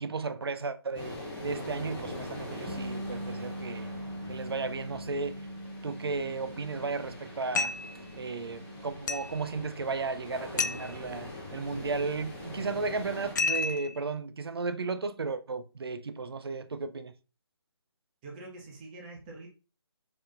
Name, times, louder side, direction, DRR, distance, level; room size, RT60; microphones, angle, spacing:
voice 1, 0.0-3.9 4.3-5.4 5.8-7.7 8.2-17.1, right 4 dB, 65° right, 0.6 m, -34 dB
sound 1, 0.9-13.3, left 1 dB, 10° left, 1.0 m, -43 dB
Bass guitar, 2.7-8.9, right 1 dB, 45° right, 1.5 m, -42 dB
sound 2, 7.5-8.0 9.1-9.4 10.6-10.9 13.4-14.0, left 4 dB, 45° left, 0.3 m, -30 dB
voice 2, 18.2-19.5, right 2 dB, 20° right, 1.2 m, -45 dB
4.6 x 3.7 x 2.5 m
figure-of-eight pair, 150°, 14 cm